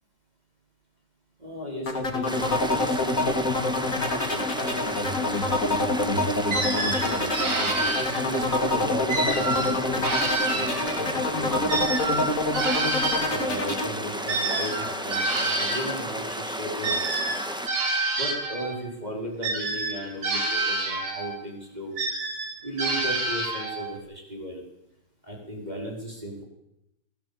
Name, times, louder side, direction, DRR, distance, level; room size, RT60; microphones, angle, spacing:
voice 1, 1.4-7.5 8.1-10.2 10.4-12.3 13.3-17.3 18.2-21.9 22.6-24.6 25.2-26.4, equal, 20° right, -2 dB, 5.0 m, -36 dB
sound 1, 1.9-13.9, left 2 dB, 35° left, 3.2 m, -26 dB
sound 2, 2.2-17.7, equal, ahead, 1.5 m, -34 dB
sound 3, 6.5-8.5 9.1-11.2 11.7-16.0 16.8-18.8 19.4-21.4 22.0-24.0, right 3 dB, 80° right, 4.4 m, -28 dB
22.5 x 18.5 x 8.8 m, 0.89 s
omnidirectional pair, 2.4 m